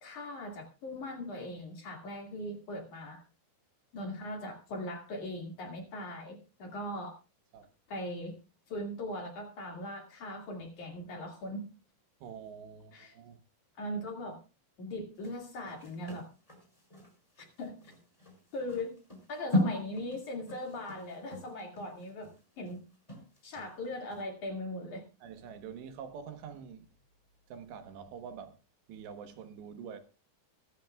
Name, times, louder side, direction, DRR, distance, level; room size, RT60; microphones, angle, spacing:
voice 1, 0.0-3.2 3.9-7.1 7.9-8.4 8.7-11.7 12.9-13.2 13.8-14.4 14.8-16.3 17.6-17.7 18.5-19.0 19.3-22.3 22.6-22.8 23.4-25.0, left 1 dB, 50° left, 3.3 m, -39 dB
voice 2, 12.2-13.4 25.2-26.9 27.5-28.6 28.9-30.0, right 7 dB, 75° right, 3.4 m, -46 dB
sound 1, 15.2-23.7 24.1-24.2, left 1 dB, 5° left, 5.6 m, -37 dB
22.5 x 11.5 x 2.4 m
omnidirectional pair, 5.2 m